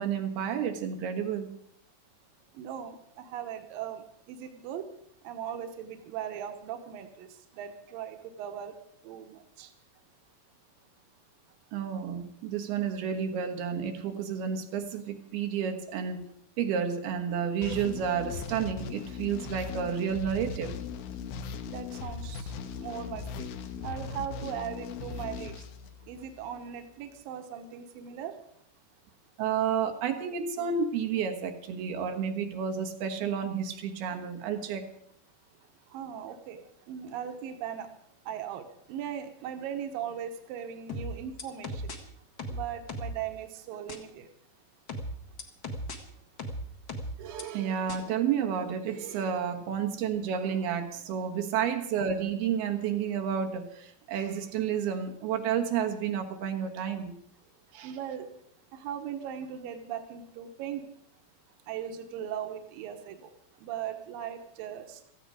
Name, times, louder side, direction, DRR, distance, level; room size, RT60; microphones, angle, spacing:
voice 1, 0.0-1.6 11.7-16.2 16.6-20.7 29.4-34.9 47.2-57.1 57.7-57.9, right 7 dB, 90° right, 4 dB, 3.4 m, -31 dB
voice 2, 2.6-4.0 4.3-4.8 5.2-7.3 7.5-8.7 9.0-9.7 21.7-22.5 22.8-23.5 23.8-25.5 26.1-28.3 35.9-36.6 36.9-37.9 38.3-41.9 42.5-44.3 57.8-58.3 58.7-60.8 61.7-63.3 63.6-65.0, right 9 dB, 75° right, 6 dB, 2.8 m, -38 dB
sound 1, 17.6-26.5, left 5 dB, 85° left, 3.0 m, -39 dB
sound 2, 40.9-42.0 42.4-43.2 43.9-44.0 44.9-46.0 46.4-47.4 47.9-48.0, equal, 45° left, 1.6 m, -36 dB
17.0 x 14.5 x 5.0 m, 0.71 s
omnidirectional pair, 4.3 m